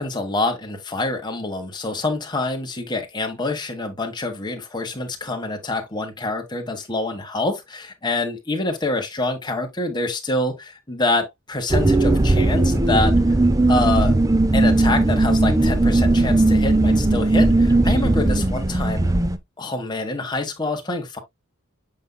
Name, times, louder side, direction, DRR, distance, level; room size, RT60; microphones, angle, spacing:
voice 1, 0.0-13.1 13.7-14.2 14.5-19.1 19.6-21.2, left 2 dB, 20° left, 1.5 m, -26 dB
sound 1, 11.7-19.4, right 2 dB, 15° right, 0.5 m, -18 dB
7.5 x 5.5 x 2.2 m
head